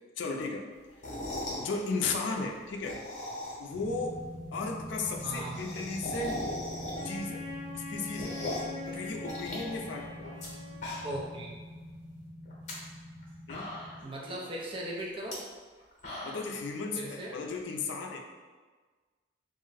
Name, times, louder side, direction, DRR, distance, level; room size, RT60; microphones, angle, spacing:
voice 1, 0.2-0.7 1.6-3.0 3.6-4.2 4.5-6.5 7.0-7.5 7.7-8.4 8.9-10.3 13.5-13.8 16.2-18.2, left 3 dB, 70° left, 1 dB, 0.4 m, -35 dB
sound 1, 0.9-1.7 2.7-3.8 4.1-4.2 4.4-4.5 4.7-4.8 5.1-7.3 7.7-8.8 9.2-10.5 10.7-11.3 11.7-11.8 12.4-12.7 13.2-13.3 13.5-14.1 15.2-15.3 15.8-16.6, left 1 dB, 40° left, 0.8 m, -38 dB
sound 2, 3.7-14.0, equal, 90° right, 1.3 m, -44 dB
voice 2, 5.2-5.7 11.0-11.6 14.0-15.4 17.0-17.4, right 1 dB, 30° right, -3 dB, 0.5 m, -38 dB
Wind instrument woodwind instrument, 6.9-11.3, left 3 dB, 5° left, 0.8 m, -43 dB
2.4 x 2.1 x 3.9 m, 1.4 s
head